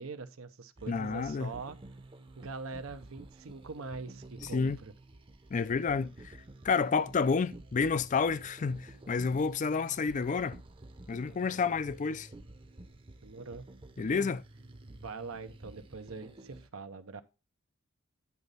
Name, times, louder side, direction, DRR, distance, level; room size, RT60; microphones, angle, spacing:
voice 1, 0.0-1.8 2.4-4.9 13.2-13.7 14.1-14.3 14.9-17.2, right 4 dB, 85° right, 0.7 m, -43 dB
sound 1, 0.8-16.7, right 2 dB, 25° right, 0.7 m, -51 dB
voice 2, 0.9-1.5 4.5-4.8 5.5-6.4 6.6-10.6 11.1-12.3 14.0-14.4, left 5 dB, 35° left, 0.4 m, -30 dB
9.6 x 4.0 x 5.3 m
head